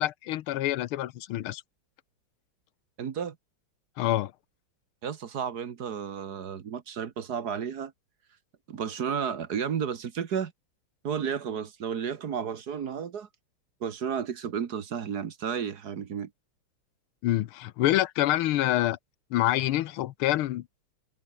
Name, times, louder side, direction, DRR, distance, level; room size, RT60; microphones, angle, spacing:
voice 1, 0.0-1.6 4.0-4.3 17.2-19.0 19.3-20.6, left 14 dB, 90° left, 1.7 m, -26 dB
voice 2, 3.0-3.4 5.0-7.9 8.7-10.5 11.0-13.3 13.8-16.3, right 7 dB, 50° right, 1.7 m, -32 dB
omnidirectional pair, 2.3 m